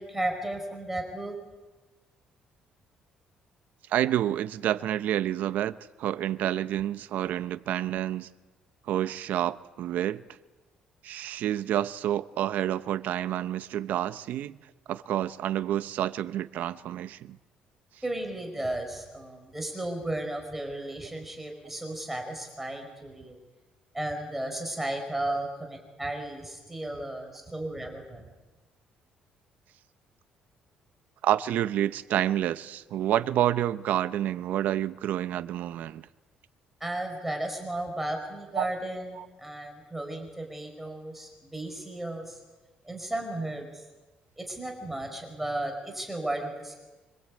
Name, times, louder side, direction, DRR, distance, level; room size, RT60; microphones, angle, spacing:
voice 1, 0.0-1.3 18.0-23.4 23.9-28.3 36.8-42.4 42.8-43.8 44.4-46.7, right 1 dB, 5° right, 4.9 m, -34 dB
voice 2, 3.9-8.3 8.9-10.2 11.0-14.6 14.9-17.4 25.3-25.4 31.2-36.1 38.5-38.7 39.2-39.3, right 12 dB, 70° right, 0.9 m, -29 dB
25.5 x 25.5 x 8.6 m
cardioid pair, 150°, 3 cm